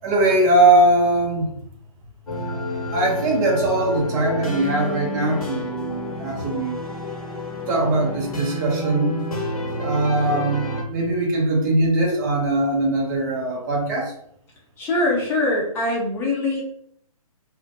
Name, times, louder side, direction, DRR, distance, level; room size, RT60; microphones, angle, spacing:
voice 1, 0.0-1.5 2.9-6.8 7.7-9.2 9.8-14.1, right 2 dB, 30° right, -1 dB, 0.7 m, -21 dB
sound 1, 2.3-10.8, left 1 dB, 85° left, 0.8 m, -29 dB
voice 2, 14.8-16.6, left 2 dB, 10° left, -3 dB, 0.6 m, -22 dB
2.4 x 2.0 x 2.7 m, 0.67 s
figure-of-eight pair, 135°, 18 cm